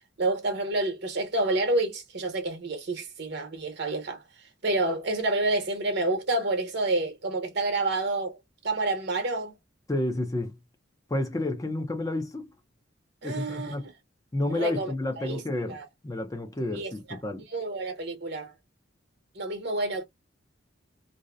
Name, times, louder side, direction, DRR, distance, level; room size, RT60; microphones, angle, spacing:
voice 1, 0.2-4.2 4.6-8.4 8.6-9.5 13.2-13.8 14.5-14.9 15.2-15.9 16.8-17.2 17.5-18.5 19.4-20.0, right 2 dB, 60° right, 0.9 m, -28 dB
voice 2, 9.9-10.6 11.1-12.5 13.2-13.9 14.3-15.8 16.0-17.4, left 1 dB, 20° left, 0.5 m, -30 dB
2.6 x 2.0 x 2.3 m
head